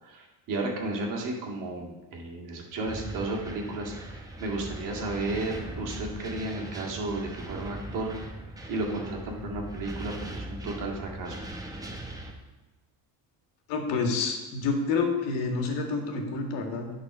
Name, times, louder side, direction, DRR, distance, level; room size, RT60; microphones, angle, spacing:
voice 1, 0.0-8.2 8.7-11.4, right 2 dB, 45° right, -1 dB, 2.1 m, -33 dB
sound 1, 2.9-12.3, right 1 dB, 10° right, 0.8 m, -40 dB
voice 2, 13.7-16.9, left 4 dB, 70° left, 2 dB, 1.8 m, -28 dB
10.0 x 4.2 x 6.0 m, 1.1 s
cardioid pair, 145°, 43 cm